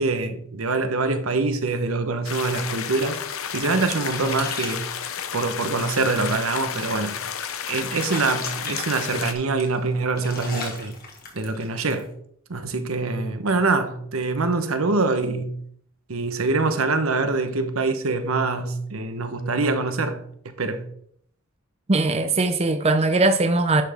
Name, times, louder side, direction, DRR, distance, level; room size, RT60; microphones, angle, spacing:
voice 1, 0.0-3.2 3.5-4.9 5.3-7.2 7.7-10.9 11.3-12.1 12.5-15.6 16.1-20.9, right 3 dB, 80° right, 1.0 m, -24 dB
sound 1, 2.2-9.3, left 8 dB, 80° left, 0.8 m, -32 dB
sound 2, 3.1-12.0, left 3 dB, 45° left, 2.0 m, -39 dB
voice 2, 21.9-23.8, right 2 dB, 30° right, 0.6 m, -20 dB
10.5 x 5.9 x 3.5 m
head